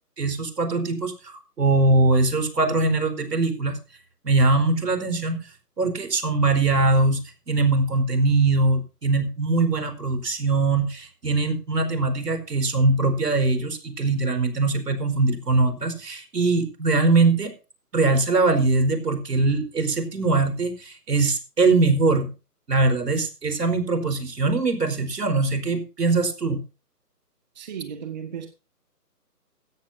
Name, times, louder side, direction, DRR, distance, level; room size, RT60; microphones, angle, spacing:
voice 1, 0.2-3.8 4.2-5.4 5.8-7.2 7.5-17.5 17.9-22.3 22.7-26.6, right 3 dB, 75° right, 4.8 m, -22 dB
voice 2, 27.5-28.5, right 8 dB, 25° right, 1.7 m, -35 dB
16.0 x 14.0 x 2.7 m
hypercardioid pair, 165°, 48 cm